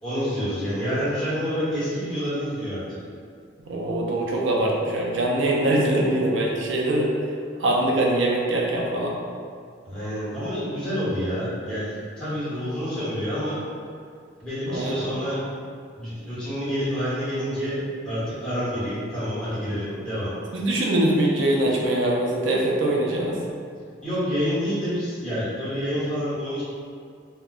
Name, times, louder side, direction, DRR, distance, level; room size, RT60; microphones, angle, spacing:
voice 1, 0.0-3.0 9.8-13.6 14.4-15.4 16.0-20.3 24.0-26.6, equal, 5° left, -13 dB, 1.2 m, -28 dB
voice 2, 3.7-7.1 7.6-9.2 14.7-15.1 20.5-23.4, right 1 dB, 70° right, -2 dB, 0.5 m, -23 dB
2.3 x 2.2 x 3.7 m, 2.2 s
head